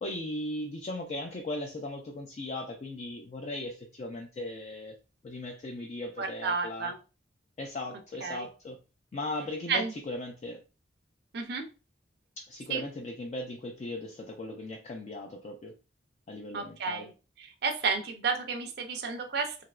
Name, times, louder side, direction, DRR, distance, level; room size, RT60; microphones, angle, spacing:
voice 1, 0.0-5.0 5.2-6.9 7.6-8.8 9.1-10.6 12.4-15.7 16.3-17.1, left 1 dB, 35° left, 2 dB, 0.3 m, -38 dB
voice 2, 6.2-7.0 8.2-8.5 9.7-9.9 11.3-11.6 12.7-12.8 16.5-17.1 17.4-19.6, right 5 dB, 60° right, 4 dB, 0.5 m, -31 dB
3.3 x 2.8 x 2.3 m, 0.33 s
head